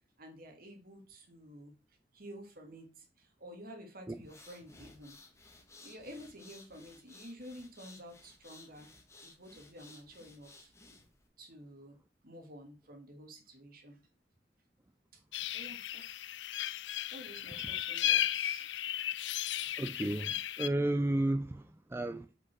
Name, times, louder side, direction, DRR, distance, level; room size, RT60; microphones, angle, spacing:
voice 1, 0.2-1.7 2.1-5.2 5.8-8.9 9.2-10.7 11.4-14.0 15.1-15.2 15.5-16.3 17.1-18.7 21.5-21.7, equal, 55° right, 2.1 m, -51 dB
sound 1, 4.1-11.3, left 3 dB, 15° left, 1.4 m, -57 dB
sound 2, 15.3-20.7, left 12 dB, 80° left, 0.4 m, -35 dB
voice 2, 19.8-21.6 21.9-22.3, right 1 dB, 15° right, 0.4 m, -32 dB
6.1 x 5.5 x 6.0 m
head